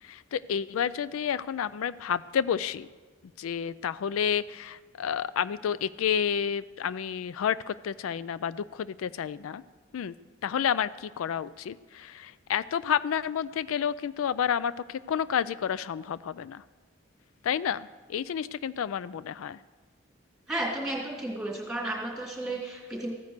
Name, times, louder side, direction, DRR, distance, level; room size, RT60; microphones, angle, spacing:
voice 1, 0.0-2.9 3.4-9.6 9.9-10.1 10.4-16.6 17.4-19.6, left 8 dB, 85° left, 17 dB, 0.3 m, -30 dB
voice 2, 20.5-23.1, right 1 dB, 5° right, -2 dB, 2.8 m, -33 dB
15.0 x 9.5 x 6.6 m, 1.4 s
head